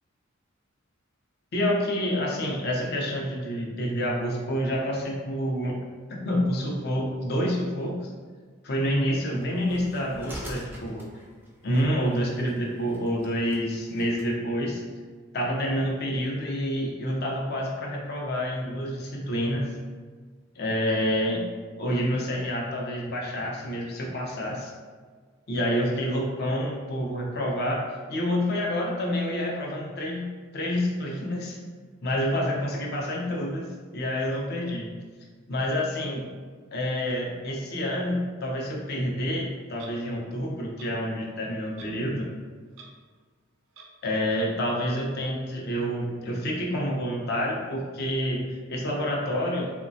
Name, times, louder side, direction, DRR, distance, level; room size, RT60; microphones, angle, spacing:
voice 1, 1.5-5.7 6.2-8.1 8.6-11.1 11.6-14.8 15.3-19.7 20.6-21.4 21.8-24.7 25.5-31.6 32.0-33.7 33.9-34.9 35.5-36.2 36.7-42.3 44.0-49.8, equal, 50° left, -1 dB, 0.5 m, -28 dB
sound 1, 9.4-14.3, equal, 10° right, 0.3 m, -45 dB
Clock, 39.8-39.9 40.8-40.9 41.8-42.0 42.3-42.4 42.7-42.9 43.7-43.9, right 5 dB, 85° right, 0.4 m, -47 dB
3.0 x 2.1 x 2.6 m, 1.5 s
head